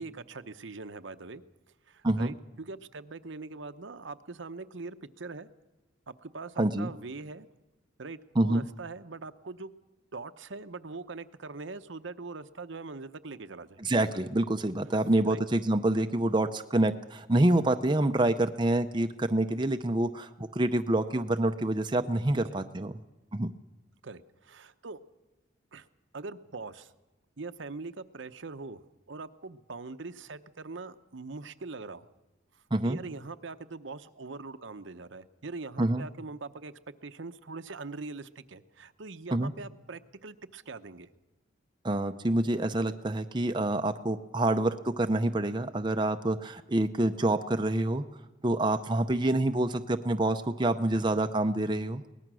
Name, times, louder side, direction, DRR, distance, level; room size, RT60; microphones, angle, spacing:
voice 1, 0.0-1.4 1.9-5.5 6.1-7.5 8.0-9.7 10.1-13.8 15.3-15.4 22.3-22.7 24.0-25.0 25.7-25.9 26.1-26.9 27.4-28.8 29.1-32.1 32.5-36.7 37.0-41.1, right 3 dB, 70° right, 10 dB, 0.8 m, -42 dB
voice 2, 6.6-6.9 8.4-8.7 13.8-22.9 23.3-23.5 32.7-33.0 35.8-36.0 39.3-39.5 41.8-48.0 48.4-52.0, right 1 dB, 25° right, 7 dB, 0.6 m, -27 dB
23.0 x 18.5 x 6.2 m, 1.1 s
head